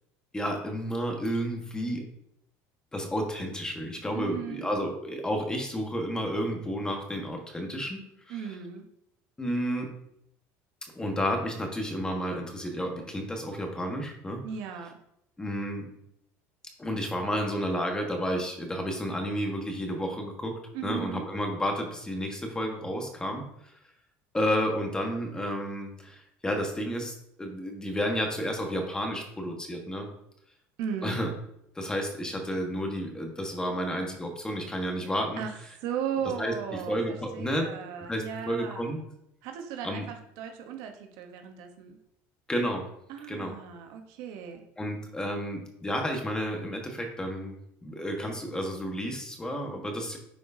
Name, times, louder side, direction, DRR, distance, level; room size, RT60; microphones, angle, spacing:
voice 1, 0.3-2.0 2.9-8.6 9.4-9.9 10.9-14.4 15.4-15.9 16.8-20.5 20.8-23.4 24.3-30.1 31.0-31.3 31.7-35.4 36.4-36.5 36.9-37.7 38.0-39.0 39.8-40.1 42.5-42.8 43.3-43.5 44.8-50.2, equal, 10° left, 2 dB, 1.4 m, -31 dB
voice 2, 4.1-4.7 8.3-8.8 14.4-14.9 20.7-21.2 30.8-31.2 35.4-35.5 35.8-38.9 39.4-41.9 43.1-44.6, right 8 dB, 75° right, 4 dB, 1.0 m, -36 dB
9.6 x 4.8 x 2.7 m, 0.78 s
supercardioid pair, 115°, 6 cm